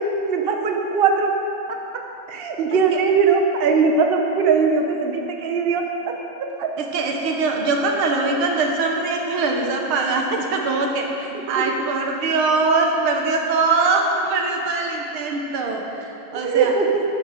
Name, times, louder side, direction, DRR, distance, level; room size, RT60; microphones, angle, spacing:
voice 1, 0.3-1.3 1.7-1.8 2.3-6.1 6.6-6.7 11.6-11.7 16.3-17.0, right 5 dB, 55° right, 3 dB, 0.6 m, -20 dB
voice 2, 6.8-16.7, right 3 dB, 90° right, 2 dB, 2.0 m, -22 dB
10.5 x 9.6 x 5.0 m, 2.9 s
omnidirectional pair, 2.2 m